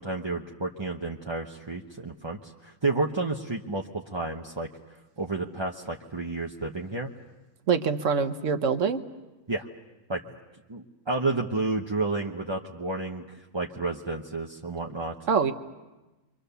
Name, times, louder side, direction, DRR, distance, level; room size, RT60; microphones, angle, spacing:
voice 1, 0.0-4.7 5.2-7.1 9.5-9.7 10.1-10.2 10.7-15.1, right 3 dB, 20° right, -1 dB, 0.7 m, -31 dB
voice 2, 7.7-9.0 15.3-15.5, right 5 dB, 50° right, 9 dB, 1.3 m, -24 dB
29.0 x 24.5 x 6.9 m, 1.1 s
omnidirectional pair, 1.8 m